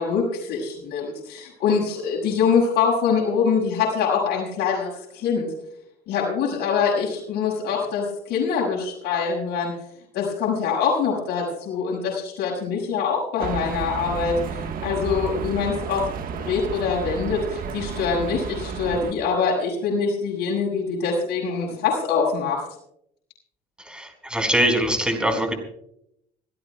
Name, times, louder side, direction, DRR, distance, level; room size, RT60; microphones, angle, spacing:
voice 1, 0.0-5.5 6.1-9.7 10.1-16.1 16.3-22.7, left 5 dB, 75° left, -3 dB, 6.2 m, -24 dB
sound 1, 13.4-19.1, right 6 dB, 55° right, 1.5 m, -32 dB
voice 2, 23.8-25.5, equal, 5° right, 5 dB, 4.7 m, -22 dB
26.5 x 16.5 x 2.3 m, 0.76 s
cardioid pair, 110°, 17 cm